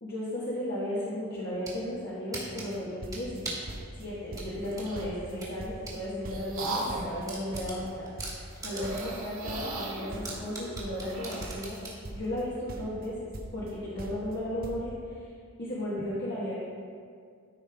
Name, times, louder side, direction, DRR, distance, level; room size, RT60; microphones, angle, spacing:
voice 1, 0.0-3.5 3.9-11.8 12.1-13.1 13.5-15.3 15.6-16.6, left 1 dB, 50° left, -9 dB, 1.5 m, -35 dB
sound 1, 1.3-1.8 2.3-3.7 4.3-6.0 6.4-6.5 6.8-6.9 7.3-9.2 9.6-9.7 10.2-12.0, right 3 dB, 15° right, 1.7 m, -40 dB
sound 2, 2.7-2.8 3.0-4.1 4.3-4.7 5.0-6.6 6.9-9.9 10.1-12.4 12.7-13.7 14.0-14.4 14.6-14.8, right 1 dB, 40° right, 0.8 m, -42 dB
sound 3, 4.5-5.1 5.8-7.2 8.6-11.6, right 2 dB, 70° right, 1.8 m, -37 dB
13.5 x 5.4 x 3.5 m, 2.2 s
head